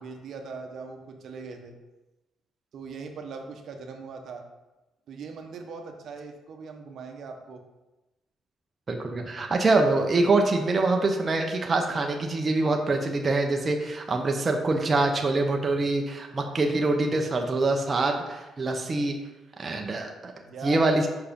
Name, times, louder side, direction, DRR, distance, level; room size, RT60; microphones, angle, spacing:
voice 1, 0.0-1.8 2.7-4.4 5.1-7.6 18.9-19.1 20.4-20.8, right 4 dB, 65° right, 4 dB, 0.9 m, -40 dB
voice 2, 8.9-19.1 19.6-20.3 20.6-21.1, right 2 dB, 35° right, 2 dB, 0.8 m, -25 dB
5.7 x 4.7 x 5.2 m, 1.0 s
cardioid pair, 90°, 0 cm